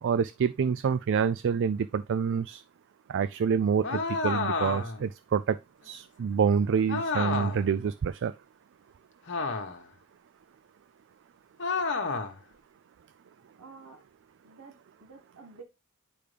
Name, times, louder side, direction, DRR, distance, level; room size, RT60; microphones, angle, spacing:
voice 1, 0.0-2.6 3.1-5.6 5.8-8.3, right 6 dB, 60° right, 0.4 m, -27 dB
sound 1, 3.8-5.1 6.9-7.7 9.3-9.9 11.6-12.4, left 4 dB, 55° left, 1.2 m, -30 dB
voice 2, 13.6-14.0 14.4-15.6, right 4 dB, 85° right, 2.6 m, -50 dB
8.6 x 5.1 x 3.3 m
head